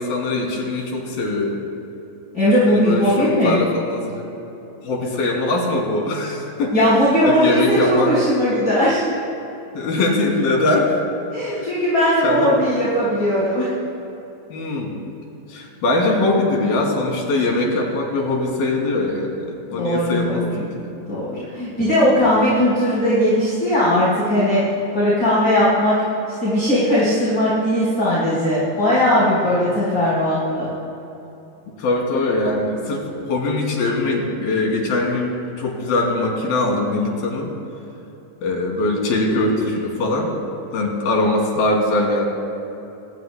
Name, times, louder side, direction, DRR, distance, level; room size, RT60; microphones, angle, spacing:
voice 1, 0.0-1.6 2.7-4.2 4.8-8.3 9.7-10.9 11.5-11.8 12.2-12.7 13.5-13.6 14.5-15.0 15.5-21.0 21.8-21.9 22.2-22.5 29.4-29.7 31.8-37.5 38.4-40.4 40.7-42.3, left 2 dB, 90° left, -1 dB, 4.6 m, -22 dB
voice 2, 2.3-3.6 6.7-9.0 11.3-13.7 19.7-20.5 21.1-24.6 24.9-26.0 26.4-30.7, equal, 30° left, -10 dB, 4.7 m, -18 dB
27.5 x 20.5 x 2.2 m, 2.9 s
omnidirectional pair, 4.1 m